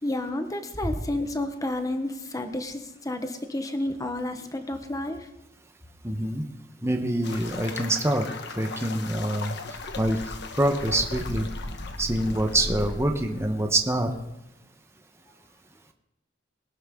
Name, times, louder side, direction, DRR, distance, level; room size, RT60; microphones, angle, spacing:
voice 1, 0.0-5.3, left 1 dB, 20° left, 7 dB, 1.2 m, -31 dB
voice 2, 6.0-6.4 6.8-8.3 8.6-9.6 10.0-10.2 10.5-11.5 12.0-14.1, right 1 dB, 15° right, 4 dB, 1.1 m, -25 dB
sound 1, 7.2-13.7, left 2 dB, 60° left, 1.3 m, -36 dB
22.5 x 12.0 x 3.8 m, 0.92 s
head